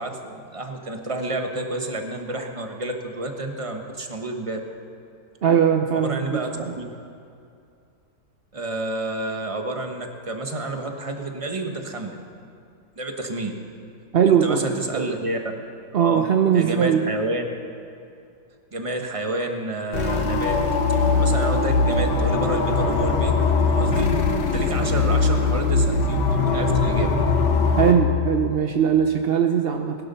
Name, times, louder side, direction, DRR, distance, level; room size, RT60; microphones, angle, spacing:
voice 1, 0.0-4.6 5.9-6.9 8.5-12.2 13.0-13.5 14.3-15.6 15.9-16.2 16.5-17.4 18.7-20.6 21.1-23.4 23.6-24.1 24.5-27.2, right 2 dB, 20° right, 4 dB, 1.1 m, -29 dB
voice 2, 5.4-6.7 14.1-14.7 14.9-15.1 15.9-17.1 27.8-30.0, right 8 dB, 65° right, 5 dB, 0.5 m, -20 dB
sound 1, 19.9-27.9, left 4 dB, 75° left, 1.9 m, -21 dB
19.5 x 11.0 x 5.6 m, 2.5 s
omnidirectional pair, 1.9 m